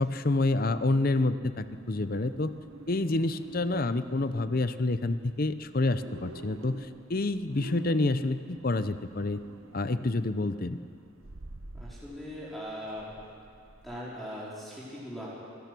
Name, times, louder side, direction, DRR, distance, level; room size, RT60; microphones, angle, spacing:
voice 1, 0.0-2.5 2.9-9.4 9.7-10.8, left 2 dB, 45° left, 12 dB, 0.7 m, -28 dB
sound 1, 1.4-14.0, right 2 dB, 75° right, 1.0 m, -49 dB
voice 2, 11.7-13.1 13.8-15.3, equal, ahead, -8 dB, 4.5 m, -40 dB
26.0 x 17.0 x 6.1 m, 2.4 s
head